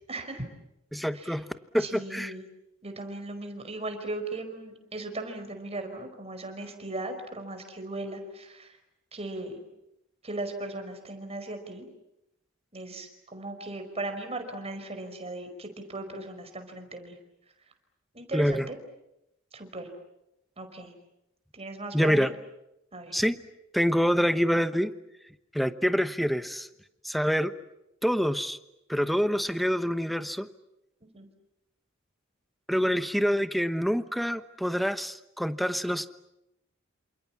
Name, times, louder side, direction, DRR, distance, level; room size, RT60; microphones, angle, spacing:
voice 1, 0.1-0.4 1.8-2.4 2.8-8.7 9.1-9.6 10.2-11.9 12.7-17.1 18.1-18.8 19.5-19.9 20.6-20.9 21.5-22.3 22.9-23.2 31.1-31.3, right 2 dB, 30° right, 6 dB, 5.1 m, -37 dB
voice 2, 0.9-1.5 1.7-2.3 18.3-18.7 21.9-22.3 23.1-23.4 23.7-24.9 25.5-26.7 27.0-27.5 28.0-28.6 28.9-30.5 32.7-36.1, equal, ahead, 11 dB, 1.0 m, -26 dB
28.5 x 27.5 x 7.3 m, 0.86 s
head